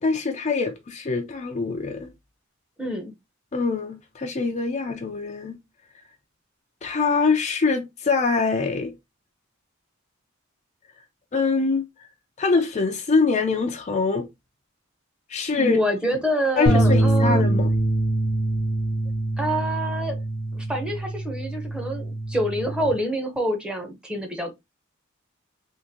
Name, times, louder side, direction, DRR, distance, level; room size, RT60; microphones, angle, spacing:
voice 1, 0.0-2.1 3.5-5.6 6.8-8.9 11.3-11.9 12.4-14.3 15.3-15.8 16.6-17.8, left 4 dB, 35° left, 0.5 m, -24 dB
voice 2, 2.8-3.1 15.5-17.5 19.4-20.2 20.5-24.5, equal, 5° right, 0.8 m, -26 dB
sound 1, 16.7-22.9, right 1 dB, 90° left, 0.8 m, -24 dB
3.7 x 2.5 x 2.7 m
head